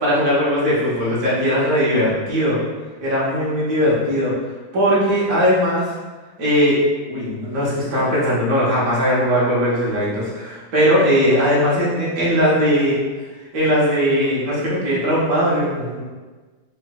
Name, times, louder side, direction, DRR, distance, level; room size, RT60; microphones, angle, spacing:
voice 1, 0.0-2.6 3.0-4.3 4.7-5.9 6.4-6.8 7.1-13.0 13.5-16.0, equal, 50° right, -7 dB, 1.4 m, -19 dB
3.8 x 3.0 x 2.3 m, 1.3 s
omnidirectional pair, 2.3 m